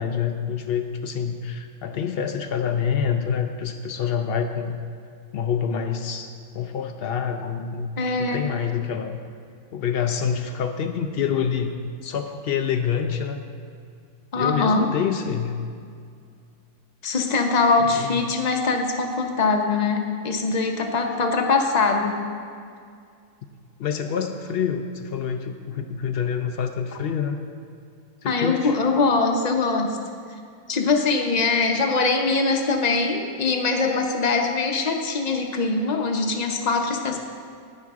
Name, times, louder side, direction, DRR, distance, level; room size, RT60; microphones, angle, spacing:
voice 1, 0.0-4.8 5.3-6.3 6.5-7.9 8.2-9.2 9.7-11.7 12.0-13.4 14.3-15.6 18.0-18.2 23.8-27.4 28.2-28.8, left 7 dB, 90° left, 6 dB, 0.5 m, -26 dB
voice 2, 8.0-8.5 14.3-14.8 17.0-22.2 28.2-30.0 30.7-37.2, left 4 dB, 40° left, 3 dB, 0.7 m, -22 dB
10.5 x 9.6 x 3.6 m, 2.3 s
omnidirectional pair, 1.6 m